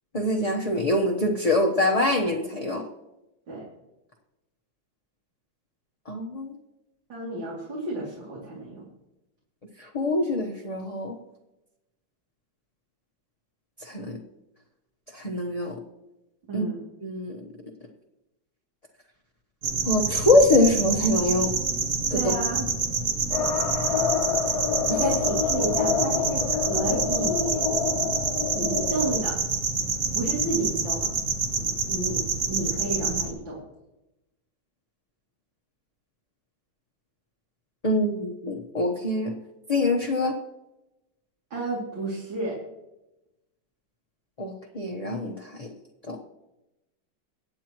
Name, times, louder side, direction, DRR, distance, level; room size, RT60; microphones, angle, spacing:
voice 1, 0.1-2.9 6.1-6.5 9.8-11.2 13.8-14.2 15.1-15.8 16.5-16.7 17.0-17.4 19.9-21.5 22.1-22.3 24.9-25.0 37.8-39.4 39.7-40.4 44.4-45.7 46.1-46.2, left 1 dB, 25° left, 0 dB, 0.8 m, -24 dB
voice 2, 7.1-8.9 16.5-16.8 22.1-22.7 23.7-24.1 24.4-24.6 25.0-27.7 28.6-29.4 30.1-31.1 31.5-33.6 41.5-42.6, right 2 dB, 70° right, -5 dB, 3.6 m, -32 dB
sound 1, 19.6-33.3, right 4 dB, 55° right, 1.7 m, -27 dB
sound 2, 23.3-29.2, left 7 dB, 60° left, 1.0 m, -27 dB
23.0 x 8.9 x 3.1 m, 0.95 s
omnidirectional pair, 2.2 m